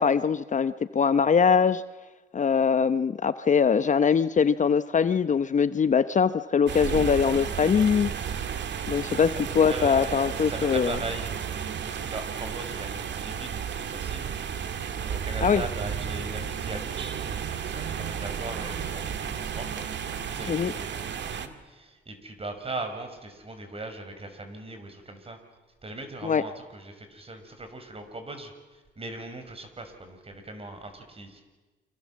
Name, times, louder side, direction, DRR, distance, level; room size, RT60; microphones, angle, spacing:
voice 1, 0.0-1.8 2.3-8.1 8.9-11.0 15.4-15.6 20.5-20.7 26.2-26.4, left 6 dB, 40° left, 13 dB, 0.8 m, -22 dB
sound 1, 6.7-21.5, right 7 dB, 65° right, 2.2 m, -33 dB
voice 2, 9.1-14.3 14.8-19.9 20.3-25.4 25.8-31.4, right 2 dB, 30° right, 7 dB, 5.7 m, -39 dB
29.5 x 26.0 x 7.5 m, 1.2 s
cardioid pair, 90°, 20 cm